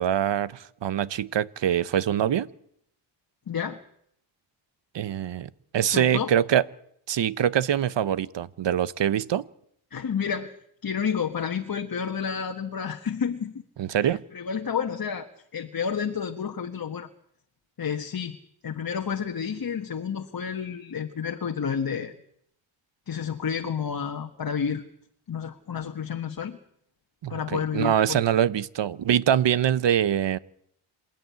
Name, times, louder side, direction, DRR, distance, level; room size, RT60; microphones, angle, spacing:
voice 1, 0.0-2.5 4.9-6.6 7.1-9.4 13.8-14.2 27.2-30.4, right 10 dB, 60° right, 17 dB, 0.9 m, -24 dB
voice 2, 3.5-3.8 5.9-6.3 9.9-10.5 10.8-13.5 13.9-17.1 17.8-18.4 18.6-22.1 23.1-24.8 25.3-26.6 27.3-28.2, left 7 dB, 45° left, 4 dB, 1.5 m, -30 dB
27.0 x 12.0 x 9.5 m, 0.71 s
cardioid pair, 95°, 49 cm